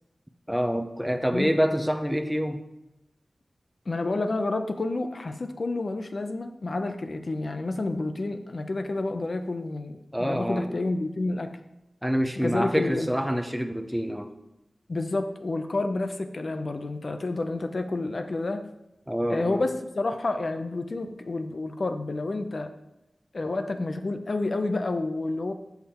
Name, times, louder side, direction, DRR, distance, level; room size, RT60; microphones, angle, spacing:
voice 1, 0.5-2.6 10.1-10.8 12.0-14.3 19.1-19.6, equal, ahead, 5 dB, 0.6 m, -26 dB
voice 2, 3.9-11.5 12.4-13.1 14.9-18.6 19.3-22.7 23.3-25.5, left 2 dB, 60° left, 7 dB, 0.7 m, -29 dB
7.0 x 5.8 x 4.4 m, 0.90 s
cardioid pair, 45°, 0 cm